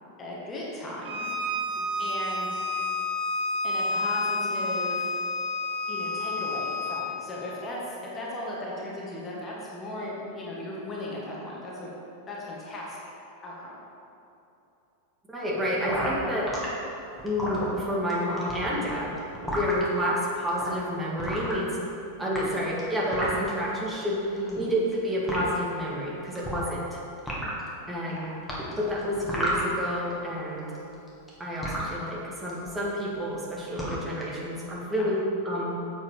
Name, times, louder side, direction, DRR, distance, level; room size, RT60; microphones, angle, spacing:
voice 1, 0.2-1.3 2.0-2.6 3.6-5.1 5.9-11.9 12.3-13.0 13.4-13.7 24.3-24.6 28.1-28.3 34.9-35.1, left 1 dB, 25° left, -4 dB, 1.7 m, -37 dB
Bowed string instrument, 1.0-7.1, left 2 dB, 45° right, 1.5 m, -29 dB
voice 2, 15.3-16.5 17.2-19.1 19.5-21.8 22.2-24.2 24.6-27.0 27.9-28.3 28.8-30.7 31.4-35.2 35.4-35.8, equal, 10° right, -5 dB, 2.0 m, -29 dB
sound 1, 15.9-16.7 17.2-18.1 18.4-19.8 20.5-20.7 21.2-21.9 22.2-23.5 24.4-25.0 25.3-25.4 26.4-26.9 27.2-27.7 28.5-30.1 30.4-31.9 32.5-32.7 33.0-33.3 33.6-34.3, equal, 5° left, 2.2 m, -32 dB
8.1 x 7.6 x 4.9 m, 2.8 s
figure-of-eight pair, 90°, 0 cm